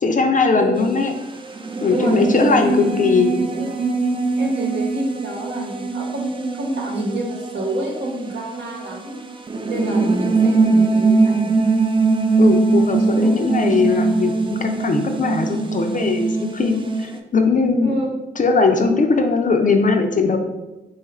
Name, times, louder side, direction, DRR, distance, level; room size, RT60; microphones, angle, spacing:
voice 1, 0.0-1.1 1.8-3.3 12.4-18.0 18.4-20.4, left 4 dB, 40° left, 5 dB, 0.5 m, -19 dB
voice 2, 0.5-0.9 1.9-2.5 3.5-3.8 4.3-9.1 9.7-11.7 13.1-13.4 17.8-18.1, right 1 dB, 65° right, -1 dB, 1.0 m, -28 dB
sound 1, 0.8-17.2, right 3 dB, 25° right, 0.4 m, -21 dB
3.0 x 2.4 x 4.2 m, 1.0 s
supercardioid pair, 50°, 20 cm